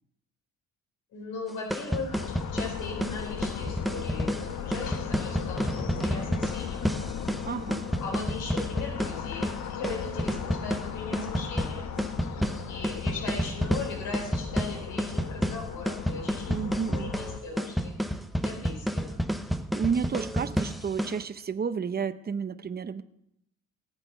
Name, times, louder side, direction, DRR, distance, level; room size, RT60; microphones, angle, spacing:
voice 1, 1.1-6.9 8.0-11.9 12.7-16.6 16.9-17.9 18.4-19.2, left 4 dB, 80° left, 0 dB, 4.1 m, -39 dB
sound 1, 1.5-21.2, equal, ahead, 0.9 m, -31 dB
sound 2, 2.1-17.4, left 8 dB, 65° left, 1.2 m, -37 dB
voice 2, 7.5-7.9 16.5-17.1 19.7-23.0, right 6 dB, 30° right, 12 dB, 0.8 m, -31 dB
18.5 x 8.3 x 5.5 m, 0.78 s
cardioid pair, 105°, 30 cm